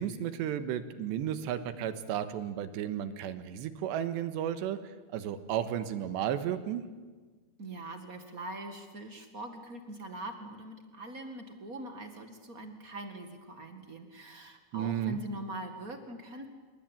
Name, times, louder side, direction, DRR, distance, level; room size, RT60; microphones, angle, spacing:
voice 1, 0.0-4.8 5.1-6.8 14.7-15.2, right 10 dB, 85° right, 11 dB, 3.5 m, -33 dB
voice 2, 7.6-16.5, right 2 dB, 60° right, 6 dB, 0.9 m, -42 dB
27.5 x 23.5 x 9.1 m, 1.4 s
omnidirectional pair, 5.0 m